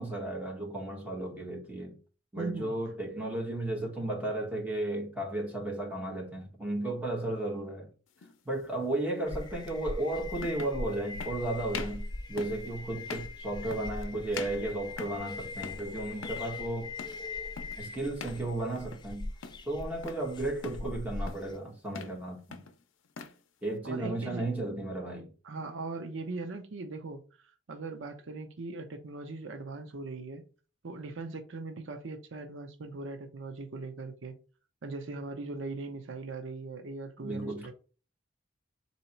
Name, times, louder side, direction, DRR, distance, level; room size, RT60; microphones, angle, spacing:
voice 1, 0.0-2.0 2.3-7.9 8.4-16.9 17.8-19.3 19.6-22.6 23.6-25.3 37.2-37.7, right 1 dB, 10° right, 1.5 m, -34 dB
voice 2, 2.4-2.7 23.8-24.5 25.4-27.2 27.7-30.4 30.8-34.4 34.8-37.7, right 3 dB, 80° right, 0.6 m, -39 dB
sound 1, 8.2-8.4 9.7-9.8 10.4-10.8 11.2-11.4 11.7-12.0 12.4-12.7 13.1-13.4 13.7-14.0 14.3-15.3 15.6-16.5 17.0-17.2 17.6-17.8 18.2-18.4 18.8-19.1 19.4-20.2 20.6-20.9 21.3-21.6 21.9-22.2 22.5-23.4, left 5 dB, 85° left, 0.5 m, -43 dB
sound 2, 9.3-21.6, left 3 dB, 20° left, 0.4 m, -41 dB
3.8 x 2.8 x 4.3 m
head